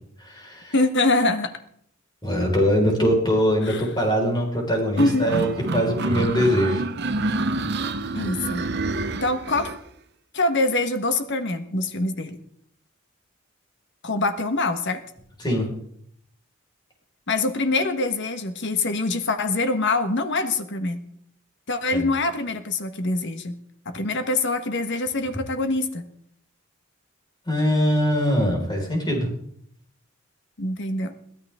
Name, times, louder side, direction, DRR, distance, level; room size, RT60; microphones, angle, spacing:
voice 1, 0.2-0.7 2.2-6.8 15.4-15.6 21.9-22.1 27.5-29.3, equal, 20° left, 0 dB, 4.9 m, -22 dB
voice 2, 0.7-1.5 3.6-3.8 5.0-5.3 8.1-8.7 9.2-9.7 10.3-12.4 14.0-15.0 17.3-21.0 21.7-23.6 23.8-26.1 30.6-31.1, left 2 dB, 55° left, 9 dB, 1.4 m, -24 dB
sound 1, 5.0-9.8, right 2 dB, 55° right, 0.8 m, -27 dB
22.5 x 14.5 x 3.7 m, 0.69 s
head